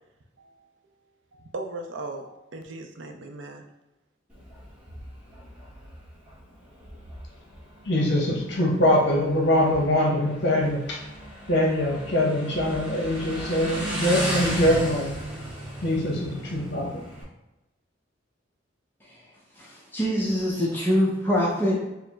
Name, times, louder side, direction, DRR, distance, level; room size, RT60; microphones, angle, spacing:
voice 1, 1.3-3.6, right 2 dB, 70° right, 4 dB, 0.5 m, -38 dB
Motorcycle, 4.3-17.2, equal, 5° right, 1.0 m, -36 dB
voice 2, 7.9-11.0 11.5-15.1 15.8-16.9, left 1 dB, 60° left, 0 dB, 0.9 m, -23 dB
voice 3, 19.6-21.9, equal, 10° left, -5 dB, 0.6 m, -24 dB
4.6 x 2.0 x 3.4 m, 0.97 s
head